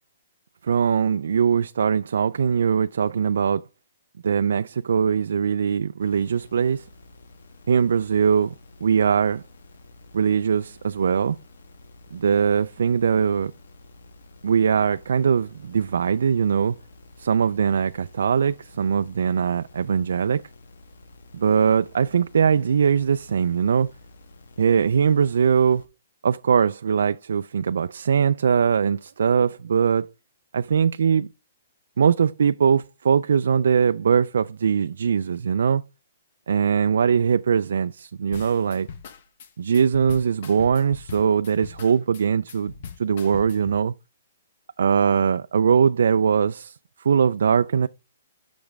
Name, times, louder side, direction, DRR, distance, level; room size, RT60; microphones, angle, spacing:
voice 1, 0.6-3.6 4.2-6.9 7.7-8.5 8.8-9.4 10.1-11.4 12.1-13.5 14.4-16.8 17.2-20.4 21.3-23.9 24.6-25.8 26.2-30.1 30.5-31.3 32.0-35.8 36.5-38.9 39.6-42.7 43.0-43.9 44.8-47.9, right 7 dB, 75° right, 0.3 m, -21 dB
sound 1, 6.0-25.9, left 2 dB, 75° left, 1.2 m, -50 dB
sound 2, 38.3-43.8, left 6 dB, 40° left, 0.8 m, -41 dB
6.0 x 5.2 x 3.4 m
hypercardioid pair, 175°, 0 cm